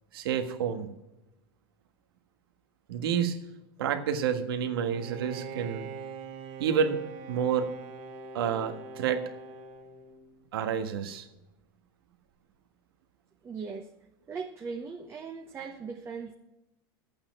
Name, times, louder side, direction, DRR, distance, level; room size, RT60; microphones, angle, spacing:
voice 1, 0.1-0.9 2.9-3.4 3.8-5.9 6.6-7.0 7.3-7.7 8.3-9.2 10.5-11.3, right 7 dB, 80° right, 7 dB, 1.5 m, -29 dB
Bowed string instrument, 4.9-10.5, right 4 dB, 50° right, 1.6 m, -43 dB
voice 2, 13.4-13.9 14.3-16.3, right 5 dB, 20° right, 3 dB, 0.9 m, -39 dB
12.0 x 8.7 x 5.9 m, 0.96 s
supercardioid pair, 130°, 12 cm